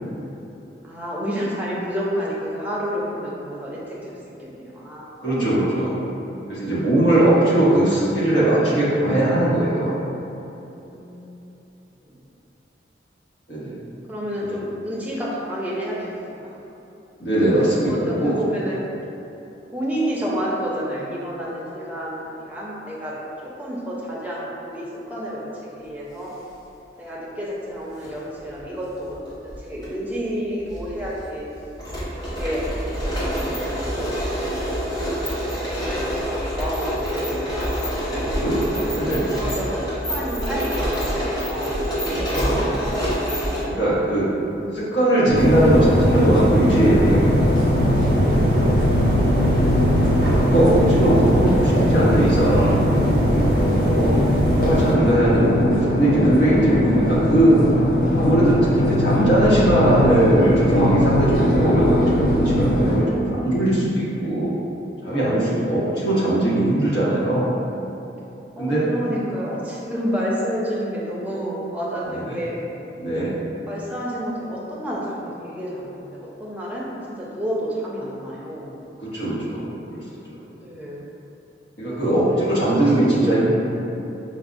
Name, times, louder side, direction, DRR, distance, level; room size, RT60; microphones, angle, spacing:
voice 1, 0.8-5.8 10.9-11.5 12.0-12.3 14.1-16.6 17.6-18.8 19.7-23.1 23.4-26.3 27.0-29.2 29.4-31.5 32.3-34.3 34.5-37.7 38.8-41.8 53.8-54.2 68.6-72.6 73.7-78.8 80.6-81.0 82.0-83.5, equal, 10° right, -6 dB, 0.5 m, -30 dB
voice 2, 5.2-6.0 6.5-10.0 13.5-13.8 14.5-14.6 17.2-18.3 38.2-39.2 42.1-42.8 43.6-44.3 44.7-47.9 50.3-52.8 53.8-54.1 54.6-57.6 58.1-64.6 65.0-67.5 68.6-68.9 72.3-72.4 73.0-73.3 79.0-80.0 80.3-80.4 81.8-83.5, right 1 dB, 85° left, -8 dB, 1.0 m, -20 dB
sound 1, 27.8-28.1 29.1-29.9 30.1-30.2 30.7-43.6, equal, 20° left, 0.8 m, -26 dB
sound 2, 45.3-63.0, left 1 dB, 50° left, 0.4 m, -21 dB
sound 3, 45.3-54.9, right 1 dB, 60° right, 0.5 m, -22 dB
5.6 x 2.0 x 2.5 m, 3.0 s
head